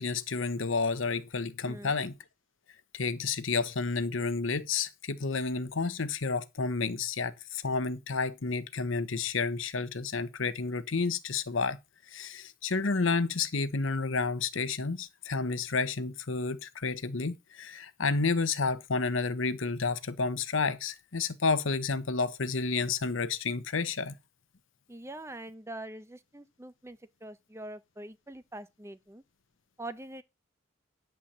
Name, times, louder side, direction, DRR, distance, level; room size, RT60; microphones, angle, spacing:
voice 1, 0.0-2.1 2.9-11.8 12.1-24.1, left 4 dB, 75° left, 0.9 m, -30 dB
voice 2, 1.6-2.0 24.9-29.2 29.8-30.2, right 1 dB, 15° right, 0.8 m, -44 dB
10.0 x 4.6 x 7.3 m
head